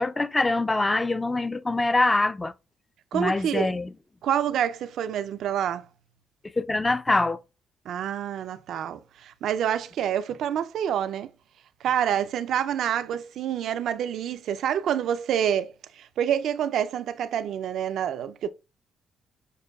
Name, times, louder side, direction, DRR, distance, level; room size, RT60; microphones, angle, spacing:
voice 1, 0.0-2.5 3.1-3.9 6.6-7.4, left 2 dB, 20° left, 0.3 m, -24 dB
voice 2, 3.1-3.7 4.2-5.8 7.9-11.3 11.8-18.5, right 9 dB, 75° right, 0.3 m, -27 dB
6.5 x 2.2 x 2.2 m
cardioid pair, 90°, 0 cm